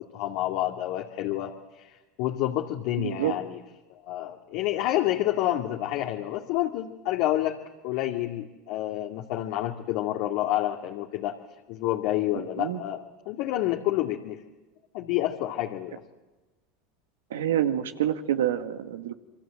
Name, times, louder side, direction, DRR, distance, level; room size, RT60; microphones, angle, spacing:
voice 1, 0.0-3.6 3.9-7.6 7.8-11.4 11.7-13.0 13.3-14.4 14.9-16.0, left 14 dB, 65° left, 2 dB, 2.3 m, -29 dB
voice 2, 3.0-3.3 12.3-12.8 17.3-19.1, right 10 dB, 90° right, 8 dB, 2.0 m, -27 dB
27.5 x 23.5 x 7.8 m, 1.2 s
hypercardioid pair, 100°, 0 cm